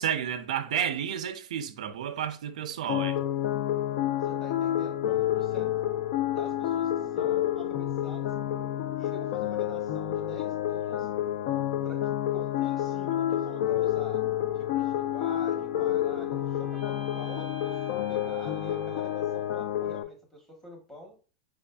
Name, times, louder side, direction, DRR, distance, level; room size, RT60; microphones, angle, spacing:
voice 1, 0.0-3.2, right 9 dB, 85° right, 0.4 m, -31 dB
sound 1, 2.9-20.0, left 11 dB, 55° left, 0.4 m, -29 dB
voice 2, 4.2-6.0 6.3-8.3 8.9-11.1 11.8-14.3 14.5-21.2, equal, 10° left, 1.1 m, -47 dB
sound 2, 15.6-19.9, right 1 dB, 30° right, 0.5 m, -47 dB
4.7 x 2.5 x 2.2 m
supercardioid pair, 155°, 4 cm